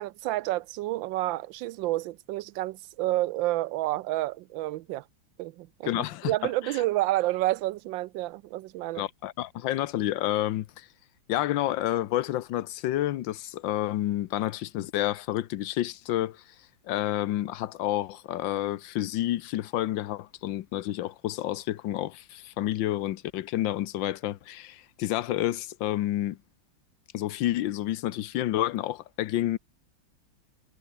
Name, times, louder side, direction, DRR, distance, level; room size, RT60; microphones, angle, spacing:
voice 1, 0.0-5.0 5.4-5.9 6.2-9.0, right 17 dB, 85° right, 1.3 m, -29 dB
voice 2, 5.8-6.3 6.6-6.8 8.9-10.9 11.3-16.5 16.8-26.4 27.1-29.6, left 14 dB, 85° left, 1.5 m, -29 dB
omnidirectional pair, 2.0 m